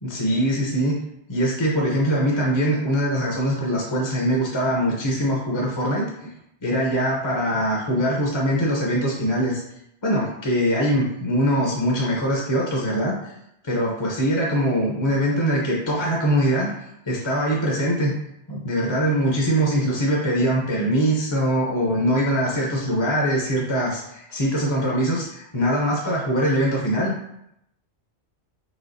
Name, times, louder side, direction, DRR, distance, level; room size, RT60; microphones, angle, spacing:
voice 1, 0.0-1.0 1.3-6.3 6.6-9.6 10.0-13.3 13.6-16.7 17.1-18.2 18.5-27.1, equal, 30° left, -3 dB, 0.7 m, -22 dB
5.1 x 3.3 x 2.6 m, 0.79 s
omnidirectional pair, 1.1 m